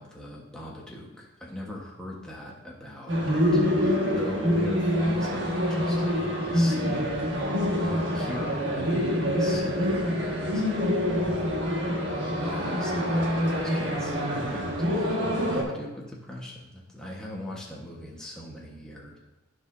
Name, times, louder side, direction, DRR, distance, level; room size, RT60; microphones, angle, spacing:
voice 1, 0.0-6.0 6.5-7.1 7.8-19.2, left 1 dB, 5° left, -4 dB, 1.3 m, -40 dB
sound 1, 3.1-15.6, equal, 60° right, 1.6 m, -26 dB
14.5 x 4.9 x 2.7 m, 1.0 s
head